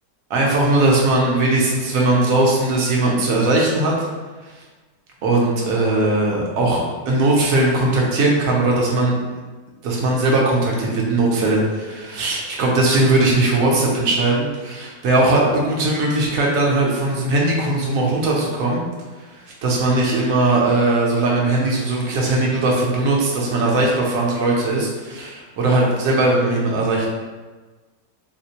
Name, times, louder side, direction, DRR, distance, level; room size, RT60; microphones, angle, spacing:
voice 1, 0.3-4.1 5.2-6.8 7.1-9.1 9.8-18.8 19.6-27.1, right 2 dB, 60° right, -3 dB, 1.0 m, -19 dB
4.2 x 2.1 x 2.8 m, 1.3 s
omnidirectional pair, 1.8 m